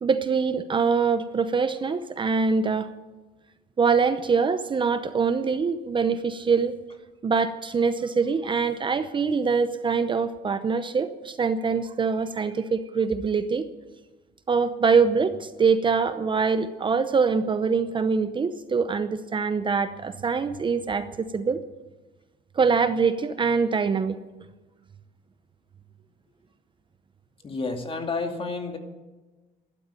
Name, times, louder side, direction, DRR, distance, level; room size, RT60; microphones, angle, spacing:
voice 1, 0.0-2.9 3.8-6.7 7.2-13.7 14.5-21.6 22.6-24.2, right 5 dB, 30° right, 11 dB, 0.7 m, -24 dB
voice 2, 27.4-28.8, left 3 dB, 35° left, 4 dB, 2.4 m, -30 dB
13.0 x 12.0 x 9.0 m, 1.2 s
cardioid pair, 110°, 17 cm